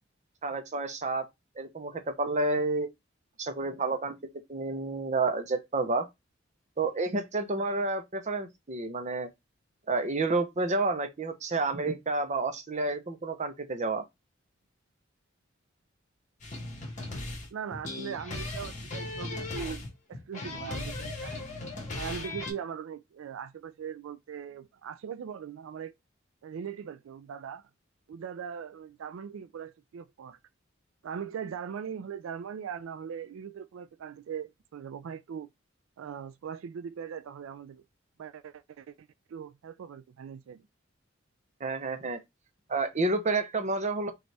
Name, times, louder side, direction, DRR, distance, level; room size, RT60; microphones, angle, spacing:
voice 1, 0.4-1.3 1.6-2.9 3.4-4.1 4.5-6.1 6.8-9.3 9.9-14.0 41.6-42.2 42.7-44.1, right 3 dB, 35° right, 0.7 m, -30 dB
sound 1, 16.4-22.5, left 2 dB, 40° left, 1.4 m, -37 dB
voice 2, 17.5-21.5 22.0-25.9 26.4-27.6 28.1-30.4 31.0-35.5 36.0-37.8 38.2-40.6, right 7 dB, 85° right, 0.3 m, -40 dB
5.1 x 2.4 x 3.2 m
head